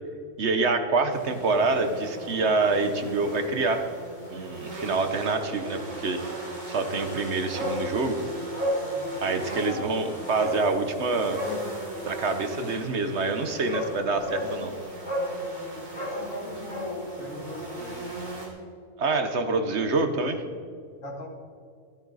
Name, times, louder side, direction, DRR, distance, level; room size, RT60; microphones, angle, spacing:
voice 1, 0.4-3.9 4.3-6.2 6.7-8.2 9.2-11.4 12.0-14.7 19.0-20.4, right 3 dB, 55° right, 8 dB, 1.2 m, -26 dB
sound 1, 1.1-18.5, right 1 dB, 35° right, 3.0 m, -39 dB
Bark, 7.5-7.8 8.1-8.2 8.5-8.8 9.4-9.7 10.3-10.6 11.3-11.6 13.2-13.3 13.7-13.9 14.2-14.5 15.0-15.3 15.9-16.9 17.2-17.3, left 1 dB, 20° left, 4.0 m, -31 dB
voice 2, 8.9-9.4 9.7-9.9 10.4-10.5 15.7-18.1 21.0-21.3, left 1 dB, 70° left, 1 dB, 2.5 m, -39 dB
13.5 x 12.5 x 4.0 m, 2.3 s
omnidirectional pair, 1.4 m